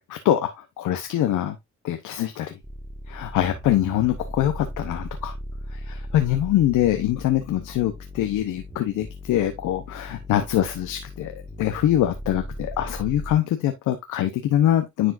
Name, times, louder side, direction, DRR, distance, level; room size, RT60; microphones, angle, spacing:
voice 1, 0.1-1.6 1.8-2.6 3.1-5.3 5.7-15.1, left 12 dB, 85° left, 0.9 m, -24 dB
sound 1, 2.6-13.4, equal, 10° right, 1.7 m, -38 dB
10.0 x 4.6 x 2.5 m
cardioid pair, 90°, 30 cm